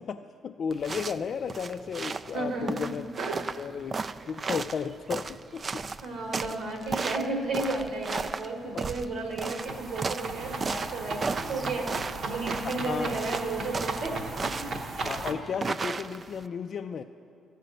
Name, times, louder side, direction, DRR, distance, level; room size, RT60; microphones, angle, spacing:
voice 1, 0.0-3.1 3.6-4.0 4.3-5.8 8.6-8.9 12.6-13.3 15.0-17.0, left 6 dB, 55° left, 5 dB, 0.3 m, -34 dB
sound 1, 0.7-16.5, right 4 dB, 40° right, 0.3 m, -35 dB
voice 2, 2.3-2.8 3.2-3.4 6.0-14.7, right 2 dB, 85° right, 1 dB, 1.7 m, -33 dB
sound 2, 9.6-15.3, right 3 dB, 55° right, 0.9 m, -36 dB
13.5 x 5.1 x 7.7 m, 2.6 s
cardioid pair, 90°, 0 cm